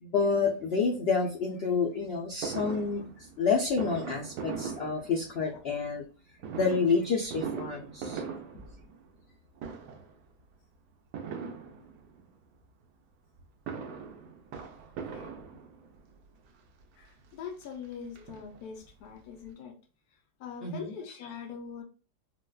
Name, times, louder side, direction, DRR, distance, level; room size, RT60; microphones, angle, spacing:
voice 1, 0.0-3.1 3.4-6.0 6.5-8.2 20.6-20.8, left 5 dB, 90° left, 0.5 m, -28 dB
Fireworks, 2.4-5.6 6.4-9.3 9.6-10.2 11.1-12.2 13.4-16.0 16.8-16.9 17.2-17.3 17.6-18.9 19.2-19.3 19.5-19.6, right 6 dB, 90° right, 1.2 m, -40 dB
voice 2, 17.0-19.7 20.4-21.8, left 6 dB, 75° left, 1.1 m, -43 dB
3.9 x 2.1 x 2.3 m
omnidirectional pair, 1.7 m